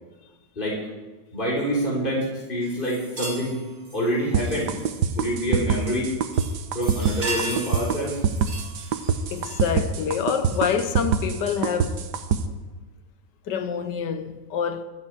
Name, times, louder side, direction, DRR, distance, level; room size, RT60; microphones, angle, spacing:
voice 1, 1.3-3.6 3.9-4.7 5.2-6.1 6.7-8.2, equal, 30° left, 4.0 m, -26 dB
sound 1, 2.6-5.3 5.8-6.1 6.3-9.8 10.5-10.6 11.5-11.7, right 2 dB, 50° right, 2.3 m, -37 dB
sound 2, 4.3-12.4, right 7 dB, 75° right, 1.5 m, -24 dB
voice 2, 9.3-12.0 13.5-14.8, left 7 dB, 80° left, 1.6 m, -26 dB
24.0 x 9.0 x 4.7 m
omnidirectional pair, 1.9 m